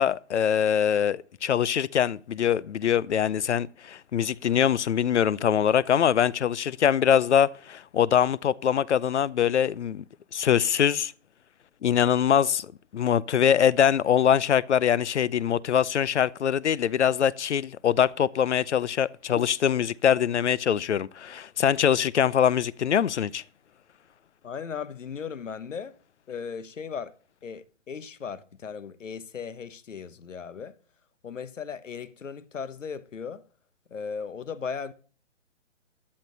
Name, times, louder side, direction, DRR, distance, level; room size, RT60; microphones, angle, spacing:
voice 1, 0.0-10.0 10.3-11.1 11.8-12.7 12.9-23.4, left 9 dB, 65° left, 0.6 m, -23 dB
voice 2, 24.4-26.0 26.3-27.1 27.4-30.8 31.2-33.4 33.9-34.9, left 6 dB, 85° left, 1.2 m, -37 dB
13.0 x 11.0 x 4.0 m
hypercardioid pair, 170°, 37 cm